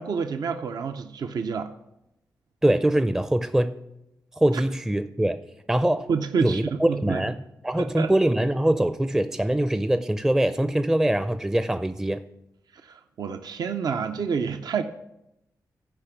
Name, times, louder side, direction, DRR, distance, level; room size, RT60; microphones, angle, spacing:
voice 1, 0.0-1.7 6.1-7.2 7.8-8.1 12.9-14.8, right 6 dB, 70° right, 7 dB, 0.5 m, -28 dB
voice 2, 2.6-3.7 4.4-5.4 5.7-6.1 6.4-12.2, right 1 dB, 10° right, 10 dB, 0.4 m, -23 dB
12.0 x 5.0 x 6.0 m, 0.87 s
cardioid pair, 65°, 7 cm